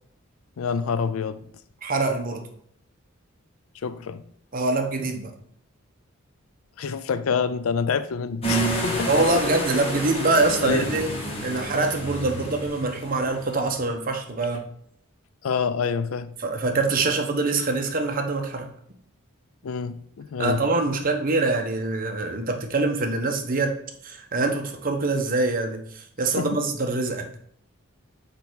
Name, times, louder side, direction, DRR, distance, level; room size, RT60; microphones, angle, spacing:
voice 1, 0.6-1.5 3.8-4.2 6.8-9.1 10.6-10.9 15.4-16.3 19.6-20.6 26.4-26.6, left 5 dB, 85° left, 0.4 m, -27 dB
voice 2, 1.8-2.5 4.5-5.3 9.1-11.1 11.4-14.6 16.4-18.7 20.4-23.7 24.0-27.4, right 3 dB, 45° right, 0.8 m, -24 dB
sound 1, 8.4-13.8, right 1 dB, 30° left, 1.4 m, -29 dB
5.3 x 4.5 x 4.5 m
head